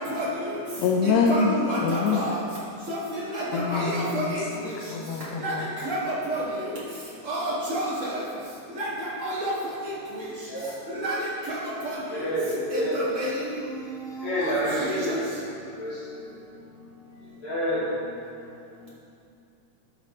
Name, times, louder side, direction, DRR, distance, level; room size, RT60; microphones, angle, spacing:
voice 1, 0.8-2.2 3.5-4.3 4.9-5.7, left 5 dB, 85° left, 0 dB, 2.0 m, -25 dB
voice 2, 1.7-2.3 2.9-3.0 3.7-4.2 5.4-5.5 5.8-6.0 6.3-6.4 7.3-7.9 8.8-8.9 9.2-9.5 11.0-11.2 12.7-13.3 14.4-14.5 14.8-14.9, right 1 dB, 90° right, -8 dB, 0.6 m, -29 dB
voice 3, 10.5-10.8 12.1-13.0 14.2-15.2 15.8-16.3 17.4-17.9, equal, 65° left, -9 dB, 3.2 m, -28 dB
12.5 x 5.9 x 3.4 m, 2.6 s
omnidirectional pair, 3.4 m